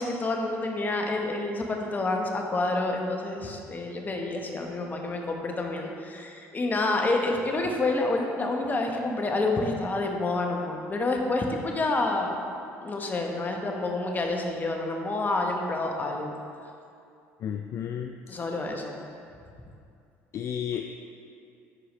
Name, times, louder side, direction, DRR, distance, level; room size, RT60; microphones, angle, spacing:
voice 1, 0.0-12.4 12.8-16.3 18.3-19.0, left 2 dB, 30° left, 2 dB, 1.0 m, -28 dB
voice 2, 17.4-18.2 20.3-20.9, left 9 dB, 50° left, 5 dB, 0.3 m, -32 dB
9.9 x 4.8 x 3.1 m, 2.5 s
supercardioid pair, 80°, 6 cm